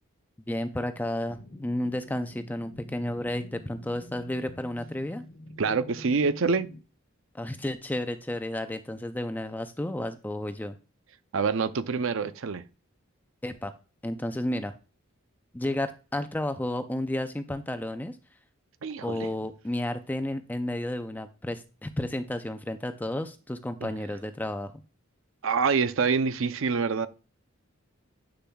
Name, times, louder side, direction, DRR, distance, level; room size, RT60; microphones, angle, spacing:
voice 1, 0.5-5.2 7.3-10.8 13.4-13.7 14.0-14.8 15.5-18.2 19.0-24.7, left 1 dB, 10° left, 0.4 m, -32 dB
sound 1, 1.3-6.8, left 1 dB, 55° left, 1.0 m, -47 dB
voice 2, 5.6-6.7 11.3-12.6 18.8-19.3 23.8-23.9 25.4-27.1, right 5 dB, 65° right, 0.5 m, -26 dB
7.7 x 6.8 x 2.3 m
head